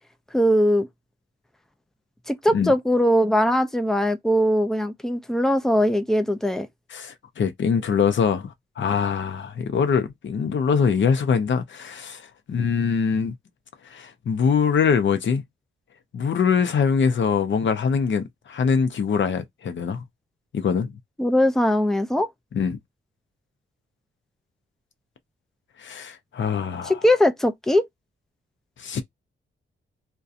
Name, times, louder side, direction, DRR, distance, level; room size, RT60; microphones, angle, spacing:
voice 1, 0.3-0.9 2.3-6.7 21.2-22.3 26.9-27.9, equal, ahead, 0.4 m, -20 dB
voice 2, 6.9-13.3 13.9-15.4 16.1-20.0 20.5-20.9 22.5-22.8 25.8-27.0 28.8-29.0, left 6 dB, 60° left, 0.6 m, -23 dB
2.6 x 2.2 x 2.4 m
wide cardioid pair, 105°, 21 cm